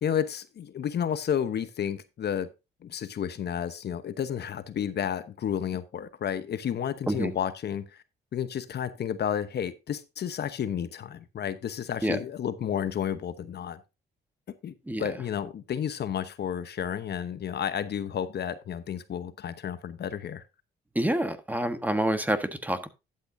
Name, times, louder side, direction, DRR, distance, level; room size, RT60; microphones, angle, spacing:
voice 1, 0.0-2.5 2.8-8.0 8.3-13.8 14.6-14.7 15.0-20.4, left 9 dB, 55° left, 12 dB, 1.0 m, -31 dB
voice 2, 20.9-22.9, right 1 dB, 10° right, 10 dB, 1.3 m, -27 dB
12.0 x 8.8 x 2.7 m, 0.25 s
cardioid pair, 90°, 20 cm